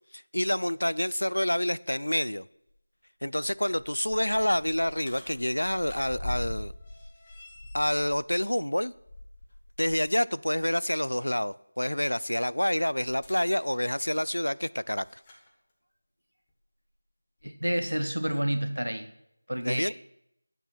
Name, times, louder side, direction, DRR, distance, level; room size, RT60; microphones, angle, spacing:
voice 1, 0.1-2.4 3.2-6.7 7.7-8.9 9.8-15.1 19.6-19.9, left 1 dB, 75° left, 0.5 m, -28 dB
sound 1, 2.7-2.8 3.4-10.1 10.5-10.7 13.1-15.5 16.5-16.6 17.4-17.5, left 1 dB, 15° left, 1.4 m, -43 dB
voice 2, 17.4-19.1 19.5-19.9, equal, 85° right, 1.6 m, -29 dB
11.5 x 9.0 x 6.0 m
figure-of-eight pair, 170°, 0 cm